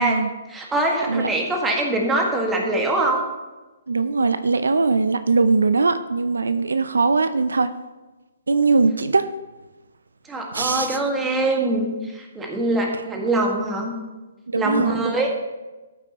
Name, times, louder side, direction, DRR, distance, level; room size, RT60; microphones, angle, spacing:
voice 1, 0.0-3.2 10.3-13.9 14.6-15.3, right 2 dB, 10° right, 0 dB, 1.8 m, -23 dB
voice 2, 3.9-7.7 8.5-9.3 10.5-11.0 14.5-15.1, right 4 dB, 80° right, 11 dB, 0.5 m, -20 dB
13.5 x 8.6 x 3.0 m, 1.2 s
hypercardioid pair, 135°, 0 cm